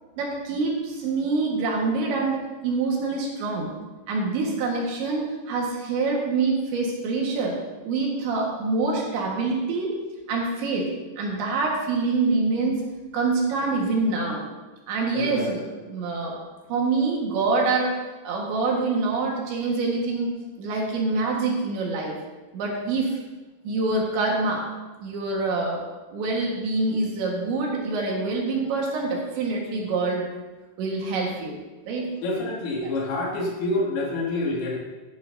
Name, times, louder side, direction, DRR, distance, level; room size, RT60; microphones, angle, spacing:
voice 1, 0.2-3.7 4.1-7.6 7.9-9.9 10.3-10.9 11.2-12.8 13.1-14.4 14.9-16.4 16.7-18.0 18.2-20.3 20.6-22.1 22.5-23.2 23.7-24.7 25.0-25.8 26.1-30.3 30.8-31.6 31.9-32.1 32.8-32.9, right 3 dB, 65° right, -1 dB, 3.6 m, -25 dB
voice 2, 15.1-15.5 32.2-34.8, left 2 dB, 80° left, -3 dB, 4.9 m, -27 dB
15.5 x 11.0 x 2.8 m, 1.2 s
omnidirectional pair, 5.9 m